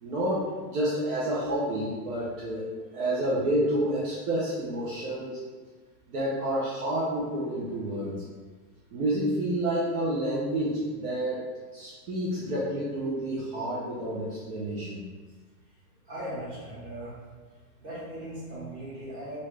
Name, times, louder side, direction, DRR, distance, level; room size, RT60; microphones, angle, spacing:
voice 1, 0.0-2.6 2.9-5.4 6.1-8.2 8.9-11.4 11.7-15.0, right 1 dB, 60° right, -7 dB, 0.9 m, -29 dB
voice 2, 16.1-17.2 17.8-19.4, right 1 dB, 25° right, -10 dB, 1.5 m, -38 dB
3.1 x 2.7 x 3.2 m, 1.4 s
supercardioid pair, 160°, 50 cm